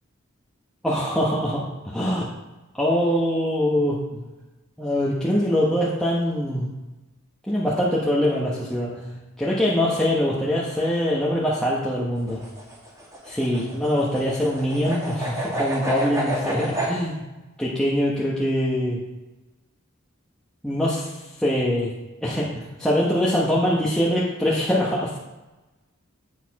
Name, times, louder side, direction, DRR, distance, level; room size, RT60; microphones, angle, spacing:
voice 1, 0.8-2.3 2.7-4.3 4.8-6.7 7.5-12.4 13.2-17.2 17.6-19.0 20.6-21.1 21.4-21.9 22.2-25.2, equal, 5° left, -7 dB, 1.1 m, -23 dB
sound 1, 12.2-16.9, right 1 dB, 15° right, 2.1 m, -30 dB
8.2 x 6.9 x 4.7 m, 1.1 s
head